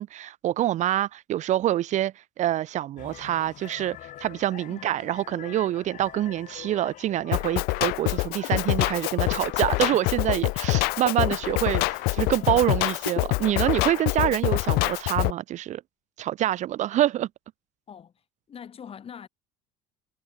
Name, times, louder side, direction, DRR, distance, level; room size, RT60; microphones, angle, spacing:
voice 1, 0.0-15.8 16.2-17.3, right 13 dB, 50° right, 0.6 m, -26 dB
sound 1, 3.0-12.7, left 13 dB, 55° left, 2.4 m, -45 dB
Drum kit, 7.3-15.3, left 25 dB, 75° left, 0.8 m, -25 dB
voice 2, 13.9-14.4 17.9-18.1 18.5-19.3, left 8 dB, 35° left, 6.1 m, -43 dB
supercardioid pair, 110°, 16 cm